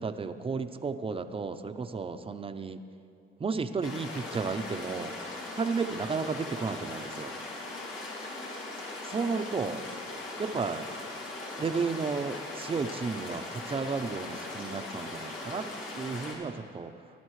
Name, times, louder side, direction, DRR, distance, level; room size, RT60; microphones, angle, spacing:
voice 1, 0.0-2.8 3.4-5.1 5.6-7.4 9.1-9.8 10.4-10.9 11.6-15.7 16.0-16.9, right 5 dB, 30° right, 9 dB, 0.6 m, -33 dB
sound 1, 3.8-16.3, left 2 dB, 85° left, 2.4 m, -39 dB
19.0 x 11.0 x 3.2 m, 2.7 s
cardioid pair, 90°, 20 cm